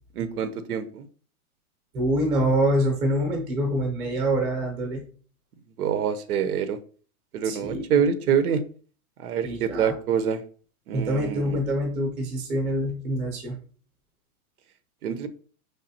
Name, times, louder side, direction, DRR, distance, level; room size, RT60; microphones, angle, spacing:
voice 1, 0.2-1.0 5.8-6.8 7.3-8.6 9.2-10.4 10.9-11.6 15.0-15.3, right 7 dB, 80° right, 11 dB, 0.7 m, -25 dB
voice 2, 1.9-5.1 7.4-8.0 9.4-9.9 10.9-13.6, right 1 dB, 15° right, 3 dB, 0.8 m, -25 dB
5.3 x 3.3 x 2.8 m, 0.42 s
hypercardioid pair, 165°, 44 cm